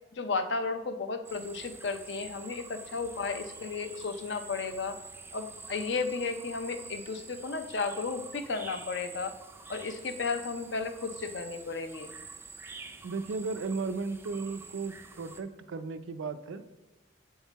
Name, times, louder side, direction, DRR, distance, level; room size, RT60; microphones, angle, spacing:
voice 1, 0.2-5.0 5.3-9.3 9.7-12.1, left 4 dB, 65° left, 8 dB, 0.5 m, -34 dB
sound 1, 1.2-15.4, right 4 dB, 10° right, 0.3 m, -47 dB
voice 2, 13.0-16.6, right 4 dB, 90° right, 11 dB, 0.4 m, -35 dB
8.1 x 3.7 x 4.0 m, 1.1 s
head